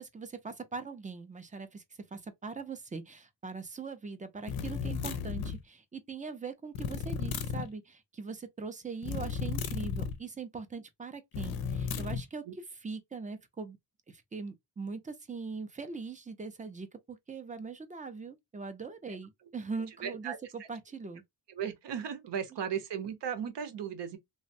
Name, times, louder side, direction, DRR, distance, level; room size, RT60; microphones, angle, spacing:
voice 1, 0.0-1.8 2.1-12.4 12.8-13.8 14.1-21.2, right 4 dB, 20° right, 0.3 m, -41 dB
sound 1, 4.5-5.6 6.7-7.7 9.0-10.2 11.3-12.2, left 7 dB, 55° left, 0.5 m, -34 dB
voice 2, 20.0-20.4 21.5-24.2, right 8 dB, 75° right, 0.8 m, -36 dB
3.2 x 2.0 x 2.5 m
wide cardioid pair, 165°, 43 cm